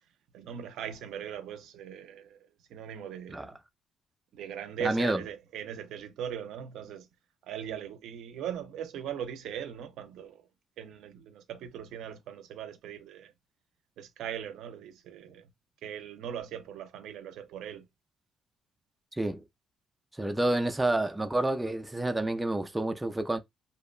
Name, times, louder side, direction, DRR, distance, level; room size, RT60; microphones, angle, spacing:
voice 1, 0.3-2.4 2.7-3.5 4.3-7.1 7.5-10.4 10.8-13.3 14.0-15.4 15.8-17.9, right 9 dB, 85° right, 0.4 m, -39 dB
voice 2, 4.8-5.2 19.2-19.4 20.2-23.4, right 1 dB, 10° right, 0.4 m, -29 dB
2.8 x 2.1 x 2.3 m
cardioid pair, 90°, 0 cm